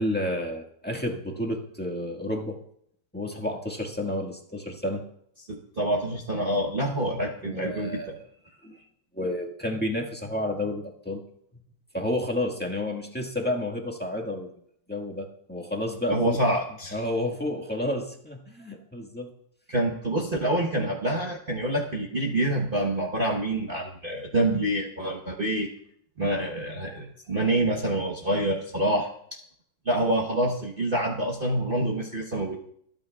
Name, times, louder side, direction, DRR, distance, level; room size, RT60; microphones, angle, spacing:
voice 1, 0.0-2.6 3.1-5.0 7.4-8.2 8.6-8.8 9.1-11.2 11.9-14.5 14.9-16.4 16.9-19.3, left 1 dB, 5° left, 0 dB, 1.5 m, -30 dB
voice 2, 5.5-8.0 16.1-17.0 19.7-25.7 26.2-29.1 29.8-32.6, right 1 dB, 35° right, -1 dB, 1.1 m, -26 dB
25.0 x 9.1 x 2.4 m, 0.66 s
omnidirectional pair, 2.0 m